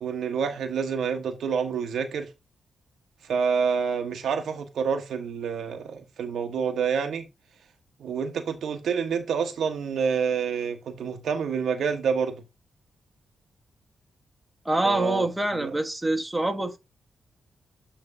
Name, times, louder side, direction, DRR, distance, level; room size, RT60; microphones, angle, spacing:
voice 1, 0.0-2.3 3.3-7.3 8.0-12.4 14.8-15.3 15.5-15.7, right 6 dB, 80° right, 1.1 m, -28 dB
voice 2, 14.6-16.8, right 1 dB, 15° right, 1.4 m, -25 dB
8.5 x 3.3 x 4.8 m
cardioid pair, 70°, 0 cm